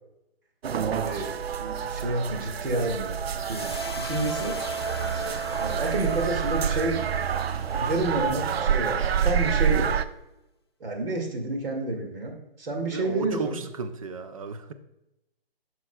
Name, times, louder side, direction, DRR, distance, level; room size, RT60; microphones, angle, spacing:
sound 1, 0.6-10.1, right 7 dB, 80° right, 0.5 m, -27 dB
voice 1, 0.9-3.2 3.5-4.6 4.9-5.0 5.6-7.0 7.7-9.9 10.8-13.6, right 2 dB, 65° right, 2 dB, 2.1 m, -30 dB
sound 2, 3.3-9.7, left 3 dB, 25° left, 0.3 m, -41 dB
voice 2, 12.8-14.7, right 4 dB, 35° right, 9 dB, 0.5 m, -34 dB
9.4 x 6.1 x 2.2 m, 0.89 s
hypercardioid pair, 155°, 30 cm